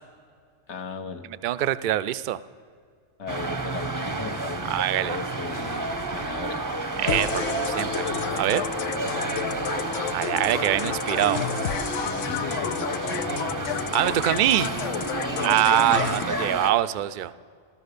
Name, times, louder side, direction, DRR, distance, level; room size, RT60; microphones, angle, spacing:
voice 1, 0.7-1.2 3.2-6.6 12.0-13.5 15.2-15.6, left 5 dB, 70° left, 6 dB, 1.3 m, -36 dB
voice 2, 1.4-2.4 4.7-5.2 7.0-8.1 8.3-8.6 10.1-11.4 13.9-14.7 15.4-17.4, right 13 dB, 60° right, 14 dB, 0.5 m, -24 dB
sound 1, 3.3-16.7, right 2 dB, 20° right, 0.6 m, -30 dB
sound 2, 7.1-16.2, left 9 dB, 90° left, 1.0 m, -31 dB
14.0 x 13.5 x 6.7 m, 2.1 s
omnidirectional pair, 1.2 m